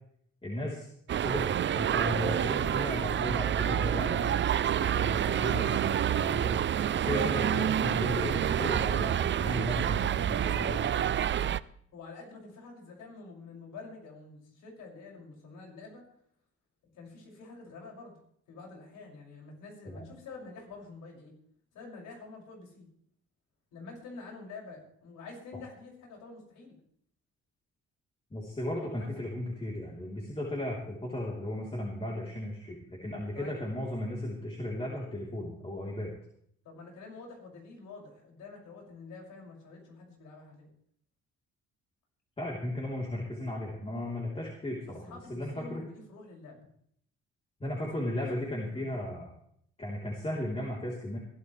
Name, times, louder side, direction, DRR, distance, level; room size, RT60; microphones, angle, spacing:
voice 1, 0.4-0.9 1.2-4.3 4.8-6.5 6.9-10.8 19.9-20.1 28.3-36.1 42.4-45.8 47.6-49.3 49.8-51.2, left 1 dB, 20° left, -3 dB, 3.6 m, -35 dB
sound 1, 1.1-11.6, right 10 dB, 40° right, 0.5 m, -28 dB
voice 2, 11.9-16.0 16.9-18.2 18.5-21.3 21.7-22.9 23.7-26.7 28.8-29.1 33.3-33.6 36.6-40.7 45.0-46.6 48.0-48.9, left 3 dB, 85° left, -1 dB, 6.4 m, -48 dB
21.5 x 12.5 x 3.3 m, 0.67 s
cardioid pair, 90°, 30 cm